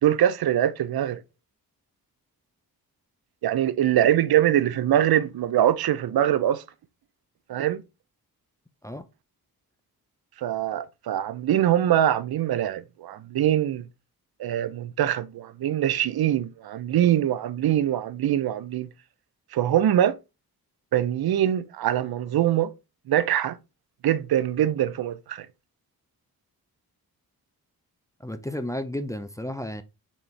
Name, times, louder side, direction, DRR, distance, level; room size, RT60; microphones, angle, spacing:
voice 1, 0.0-1.2 3.4-6.6 7.5-7.8 10.4-13.9 14.4-18.9 19.5-20.2 20.9-22.7 23.1-23.6 24.0-25.5, right 11 dB, 70° right, 0.6 m, -23 dB
voice 2, 28.2-29.8, left 1 dB, 10° left, 0.5 m, -32 dB
4.2 x 3.4 x 3.2 m
cardioid pair, 65°, 38 cm